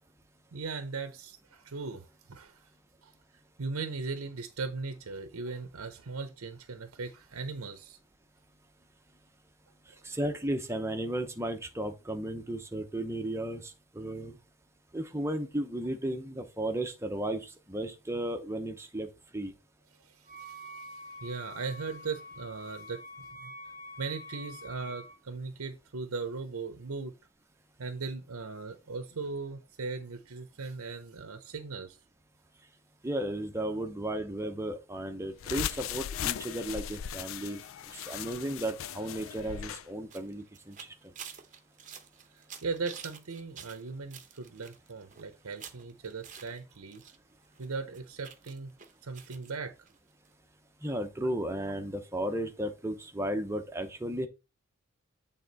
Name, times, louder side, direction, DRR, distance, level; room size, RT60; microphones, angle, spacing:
voice 1, 0.5-2.6 3.0-3.1 3.6-8.0 20.1-23.5 24.0-27.1 27.8-32.0 42.3-47.0 47.6-48.7 49.0-49.7, right 4 dB, 85° right, 0.8 m, -38 dB
voice 2, 10.0-14.4 14.9-19.1 19.3-19.5 33.0-37.6 38.1-40.7 50.8-54.3, right 1 dB, 10° right, 0.8 m, -34 dB
Wind instrument woodwind instrument, 20.3-25.2, left 1 dB, 40° left, 1.2 m, -46 dB
sound 1, 35.4-39.9, left 10 dB, 65° left, 0.3 m, -38 dB
sound 2, 36.3-47.2 47.4-49.5 49.9-50.0 50.3-50.4, right 8 dB, 35° right, 0.8 m, -51 dB
8.4 x 3.7 x 4.0 m
head